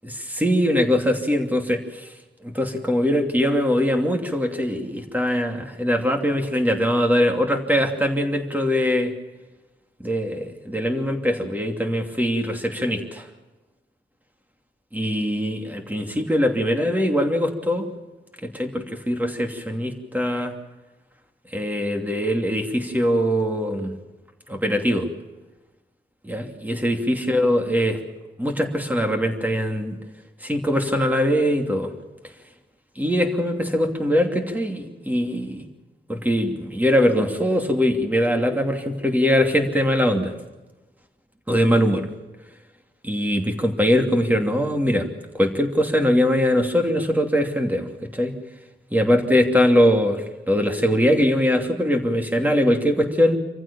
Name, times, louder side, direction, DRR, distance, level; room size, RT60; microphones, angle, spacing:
voice 1, 0.0-2.1 2.4-9.1 10.0-13.3 14.9-17.9 18.4-20.5 21.5-24.0 24.5-25.1 26.2-28.0 28.4-30.0 30.4-31.9 33.0-35.7 36.1-40.3 41.5-42.1 43.0-48.3 48.9-53.4, equal, 10° right, 3 dB, 2.8 m, -22 dB
26.0 x 15.0 x 7.2 m, 1.1 s
wide cardioid pair, 135°, 18 cm